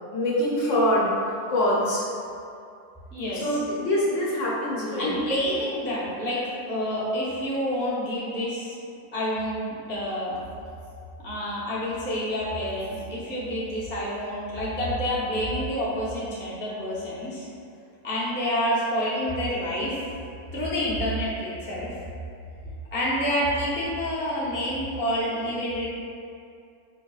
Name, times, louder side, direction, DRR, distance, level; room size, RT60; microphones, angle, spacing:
voice 1, 0.1-1.1 1.5-2.0 3.3-5.4, left 1 dB, 65° left, -5 dB, 0.8 m, -24 dB
voice 2, 3.1-3.4 5.0-6.4 6.7-8.8 9.1-10.4 11.2-17.4 18.0-20.0 20.5-22.0 22.9-25.9, equal, 20° left, -9 dB, 0.3 m, -28 dB
4.5 x 2.9 x 2.3 m, 2.5 s
omnidirectional pair, 1.6 m